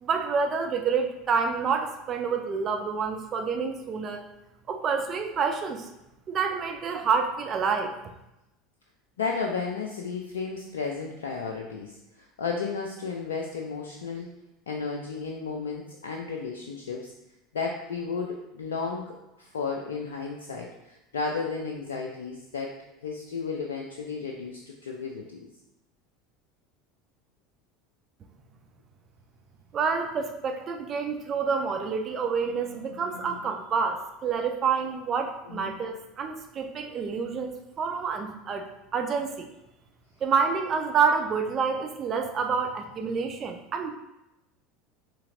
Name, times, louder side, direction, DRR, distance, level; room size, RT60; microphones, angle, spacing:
voice 1, 0.0-4.2 4.7-5.9 6.3-7.9 29.7-38.7 38.9-39.5 40.2-43.9, right 5 dB, 35° right, 5 dB, 0.6 m, -28 dB
voice 2, 9.2-14.3 14.7-17.1 17.5-25.5 32.4-33.4 35.5-35.8, left 5 dB, 70° left, 1 dB, 0.4 m, -34 dB
5.6 x 3.3 x 2.6 m, 0.90 s
figure-of-eight pair, 75°, 0 cm